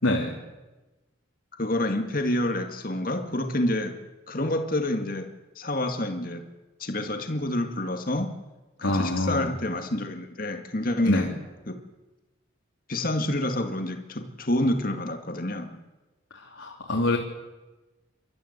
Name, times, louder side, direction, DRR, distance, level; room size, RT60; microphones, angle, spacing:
voice 1, 0.0-0.3 8.8-9.5 11.0-11.3 16.3-17.2, left 2 dB, 80° left, -2 dB, 3.1 m, -25 dB
voice 2, 1.6-4.0 4.3-5.3 5.6-6.5 6.8-8.3 8.8-11.3 11.7-11.8 12.9-15.8, left 1 dB, 45° left, 6 dB, 2.1 m, -28 dB
29.5 x 13.0 x 8.2 m, 1.1 s
head